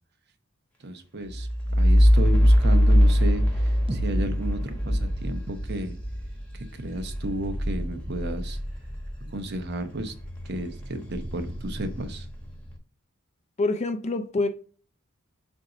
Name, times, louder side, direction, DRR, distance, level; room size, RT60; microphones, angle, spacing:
voice 1, 0.8-5.9 6.5-8.6 9.2-10.1 10.4-12.3, right 1 dB, 55° right, 0.9 m, -33 dB
sound 1, 1.3-9.5 9.9-12.5, equal, 5° left, 1.3 m, -23 dB
sound 2, 3.9-7.9, right 1 dB, 25° right, 0.5 m, -41 dB
voice 2, 13.6-14.5, left 2 dB, 35° left, 0.5 m, -26 dB
7.3 x 2.7 x 4.9 m
head